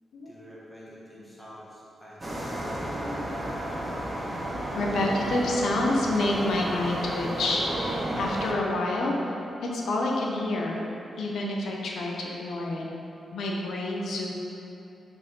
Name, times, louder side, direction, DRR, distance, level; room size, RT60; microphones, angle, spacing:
voice 1, 0.2-2.7, equal, ahead, -8 dB, 1.3 m, -48 dB
sound 1, 2.2-8.5, right 1 dB, 15° right, 0.7 m, -32 dB
voice 2, 2.5-3.9 4.5-9.1 9.6-10.8 11.2-12.8 13.3-14.3, left 2 dB, 80° left, -1 dB, 0.9 m, -29 dB
5.5 x 4.7 x 5.4 m, 3.0 s
wide cardioid pair, 170°, 0 cm